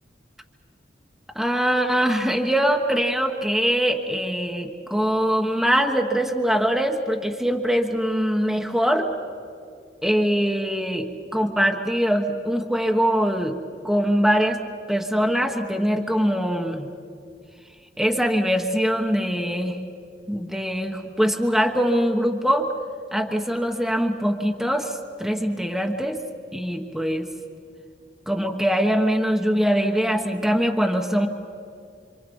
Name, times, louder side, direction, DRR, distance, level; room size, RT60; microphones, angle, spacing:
voice 1, 1.3-9.1 10.0-13.6 13.8-14.6 14.9-16.9 18.0-19.8 20.3-22.7 23.1-26.2 26.5-27.3 28.3-31.3, equal, ahead, 2 dB, 1.2 m, -22 dB
27.5 x 25.5 x 5.4 m, 2.4 s
head